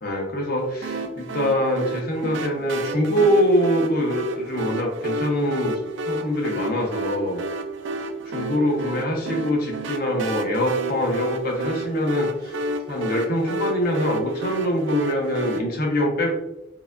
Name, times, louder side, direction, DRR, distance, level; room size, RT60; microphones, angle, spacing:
voice 1, 0.0-5.7 6.1-7.4 8.3-12.5 12.9-16.4, equal, 50° left, 0 dB, 0.9 m, -24 dB
sound 1, 0.8-15.6, right 1 dB, 75° right, 0.4 m, -31 dB
4.7 x 2.3 x 2.5 m, 0.90 s
head